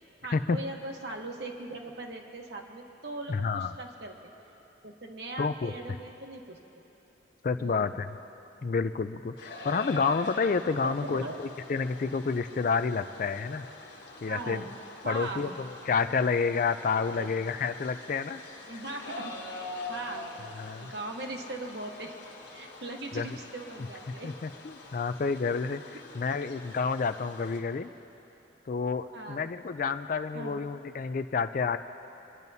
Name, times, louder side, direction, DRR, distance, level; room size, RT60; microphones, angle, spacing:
voice 1, 0.2-4.1 4.8-6.6 7.6-8.0 10.8-11.4 14.3-14.7 15.0-15.6 17.1-17.3 18.7-19.6 19.9-20.3 20.8-22.1 22.5-24.4 29.1-29.5 30.3-30.6, right 2 dB, 60° right, 2 dB, 1.1 m, -39 dB
voice 2, 3.3-3.7 5.4-6.0 7.4-8.2 8.6-13.7 14.2-14.6 15.1-18.4 18.7-18.8 20.5-20.9 23.1-23.3 24.2-27.9 28.7-31.8, left 5 dB, 45° left, 10 dB, 0.3 m, -29 dB
sound 1, 9.4-27.6, left 2 dB, 65° left, 1.4 m, -45 dB
26.5 x 10.5 x 2.8 m, 3.0 s
head